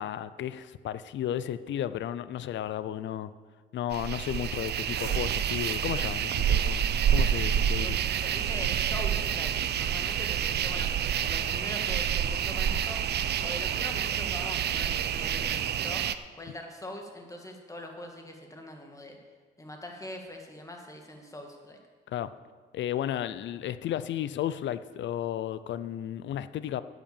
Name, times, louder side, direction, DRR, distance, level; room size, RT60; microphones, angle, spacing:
voice 1, 0.0-3.3 3.7-6.8 7.1-7.9 22.1-22.3 22.7-26.8, left 11 dB, 70° left, 14 dB, 0.6 m, -33 dB
sound 1, 3.9-16.2, right 9 dB, 55° right, 0.5 m, -28 dB
voice 2, 7.8-10.9 11.2-13.0 13.4-16.0 16.4-19.2 19.6-21.8, left 1 dB, 15° left, 2 dB, 2.0 m, -42 dB
9.0 x 8.3 x 7.1 m, 1.5 s
cardioid pair, 90°, 20 cm